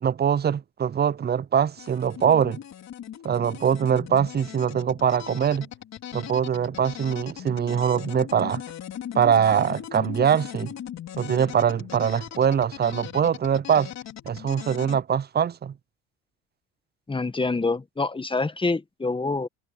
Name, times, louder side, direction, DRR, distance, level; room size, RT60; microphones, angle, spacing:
voice 1, 0.0-2.6 3.2-5.7 6.1-8.6 9.1-10.7 11.2-13.9 14.3-15.7, right 8 dB, 30° right, 0.7 m, -23 dB
sound 1, 1.8-15.0, left 10 dB, 50° left, 3.6 m, -39 dB
voice 2, 17.1-19.5, left 3 dB, 15° left, 1.7 m, -26 dB
hypercardioid pair, 65°, 34 cm